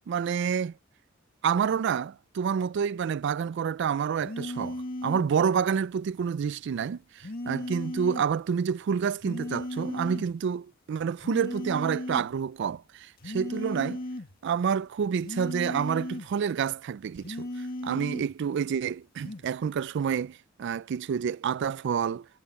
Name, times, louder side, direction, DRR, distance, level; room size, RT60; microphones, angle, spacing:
voice 1, 0.1-0.7 1.4-14.0 14.4-22.3, right 7 dB, 60° right, 0.3 m, -28 dB
sound 1, 4.2-5.4 7.2-8.4 9.2-10.4 11.2-12.4 13.2-14.4 15.2-16.4 17.2-18.4 19.2-19.5, left 1 dB, 50° left, 1.7 m, -36 dB
head